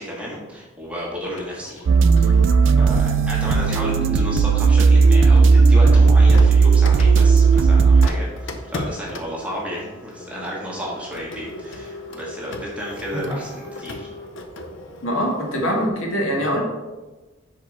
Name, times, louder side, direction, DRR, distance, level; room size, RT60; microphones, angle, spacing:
voice 1, 0.0-1.8 2.2-2.4 2.8-14.1, equal, 5° right, -5 dB, 1.5 m, -32 dB
Printer, 1.4-4.6 5.3-15.9, left 1 dB, 70° left, 0.6 m, -37 dB
sound 1, 1.9-8.1, right 4 dB, 65° right, 0.3 m, -14 dB
voice 2, 15.0-16.6, equal, 90° left, -1 dB, 1.6 m, -23 dB
5.3 x 4.9 x 4.6 m, 1.2 s
head